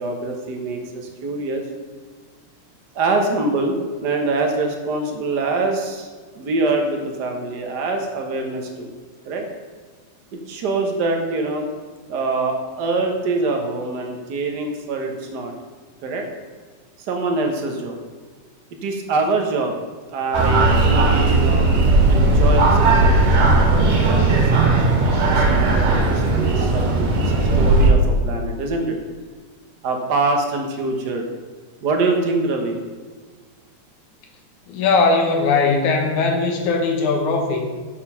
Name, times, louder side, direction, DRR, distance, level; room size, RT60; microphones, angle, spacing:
voice 1, 0.0-1.6 2.9-6.1 6.3-8.9 9.2-9.4 10.3-11.7 12.1-15.5 16.0-16.3 17.0-18.0 18.7-19.7 20.1-21.8 22.1-24.7 25.2-29.0 29.8-31.2 31.8-32.8, right 3 dB, 55° right, 3 dB, 1.1 m, -24 dB
sound 1, 20.3-27.9, right 2 dB, 90° right, 3.1 m, -16 dB
voice 2, 34.7-37.6, left 4 dB, 75° left, 2 dB, 2.6 m, -19 dB
8.3 x 6.9 x 5.6 m, 1.5 s
omnidirectional pair, 3.5 m